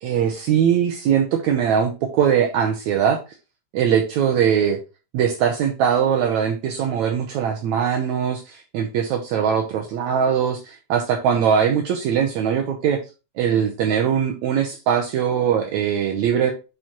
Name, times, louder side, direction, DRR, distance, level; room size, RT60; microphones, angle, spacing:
voice 1, 0.0-3.2 3.7-4.8 5.1-13.0 13.4-16.5, right 8 dB, 70° right, 3 dB, 1.9 m, -21 dB
8.9 x 5.0 x 3.0 m, 0.30 s
omnidirectional pair, 3.8 m